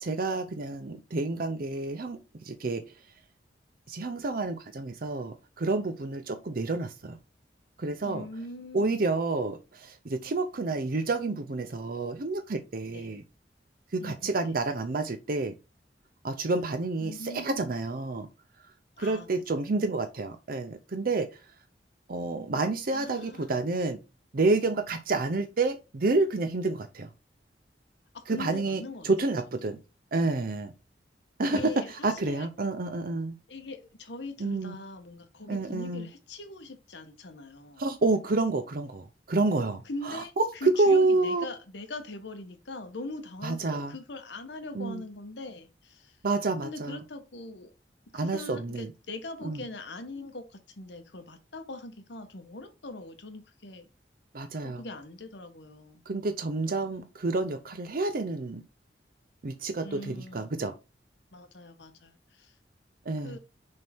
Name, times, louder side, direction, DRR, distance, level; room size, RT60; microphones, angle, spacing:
voice 1, 0.0-2.8 3.9-7.2 7.8-8.3 8.7-13.2 13.9-15.5 16.2-18.3 19.0-21.4 22.1-24.0 24.3-27.1 28.3-29.8 30.1-30.7 31.4-33.4 34.4-34.8 35.5-36.1 37.8-41.5 43.4-43.9 44.7-45.0 46.2-47.0 48.1-48.9 49.4-49.6 54.3-54.8 56.1-58.6 59.4-60.7 63.1-63.4, right 3 dB, 55° right, 0.6 m, -29 dB
voice 2, 8.0-9.1 12.9-13.1 14.0-14.5 17.0-17.7 19.0-19.6 22.9-23.6 28.1-29.1 29.6-29.7 31.4-32.5 33.5-37.8 39.9-46.2 46.6-47.7 48.1-53.9 54.6-56.0 59.8-60.5 61.3-62.5 63.2-63.4, left 2 dB, 85° left, 1.1 m, -42 dB
6.5 x 3.6 x 4.3 m
head